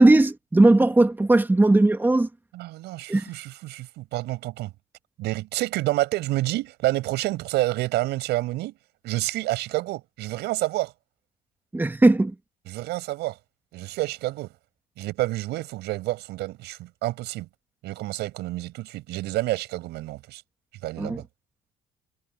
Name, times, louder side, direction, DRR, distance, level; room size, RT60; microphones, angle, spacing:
voice 1, 0.0-2.3 3.1-3.2 11.7-12.3 21.0-21.2, right 2 dB, 10° right, 2.4 m, -18 dB
voice 2, 2.5-4.7 5.2-8.7 9.0-10.9 12.7-13.4 13.7-14.5 15.0-17.5 17.8-20.4 20.8-21.2, right 18 dB, 85° right, 7.7 m, -29 dB
cardioid pair, 110°, 17 cm